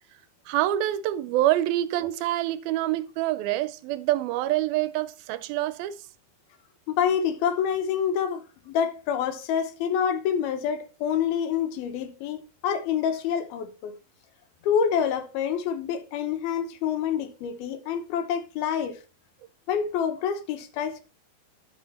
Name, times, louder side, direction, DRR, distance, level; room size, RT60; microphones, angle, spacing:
voice 1, 0.5-6.0, right 14 dB, 80° right, 2.4 m, -26 dB
voice 2, 6.9-13.9 14.6-19.0 19.7-21.0, left 8 dB, 80° left, 3.0 m, -27 dB
12.5 x 5.6 x 4.1 m
omnidirectional pair, 4.3 m